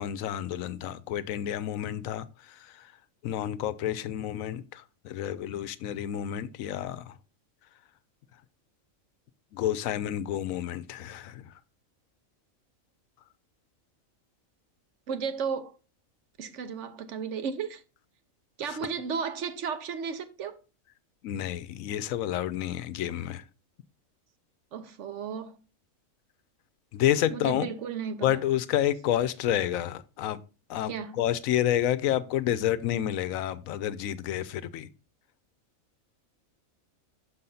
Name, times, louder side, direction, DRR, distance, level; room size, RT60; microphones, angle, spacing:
voice 1, 0.0-2.9 3.2-7.1 9.5-11.5 18.6-18.8 21.2-23.4 26.9-27.7 28.2-30.4 30.7-34.9, left 11 dB, 80° left, 1.0 m, -29 dB
voice 2, 15.1-15.7 16.4-17.8 18.6-20.6 24.7-25.6 27.3-28.4 30.9-31.2, right 6 dB, 65° right, 1.0 m, -34 dB
6.2 x 5.6 x 3.9 m
omnidirectional pair, 1.4 m